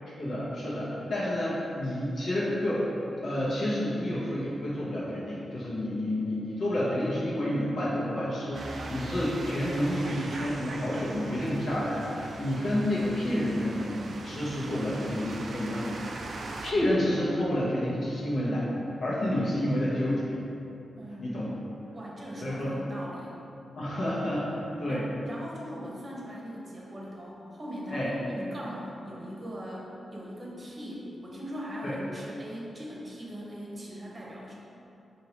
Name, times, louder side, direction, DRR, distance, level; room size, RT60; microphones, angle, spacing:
voice 1, 0.2-2.9 3.2-16.0 16.3-18.7 19.0-20.4 21.2-21.5 22.4-22.7 23.7-24.4 24.8-25.1 27.9-28.1 31.8-31.9, left 1 dB, 70° left, -8 dB, 1.0 m, -29 dB
sound 1, 8.5-16.7, right 2 dB, 65° right, 0.3 m, -40 dB
voice 2, 21.0-21.3 21.9-23.4 23.9-24.1 24.4-24.5 24.9-34.5, equal, 40° right, -4 dB, 0.8 m, -40 dB
4.5 x 2.8 x 2.9 m, 2.9 s
cardioid pair, 70°, 0 cm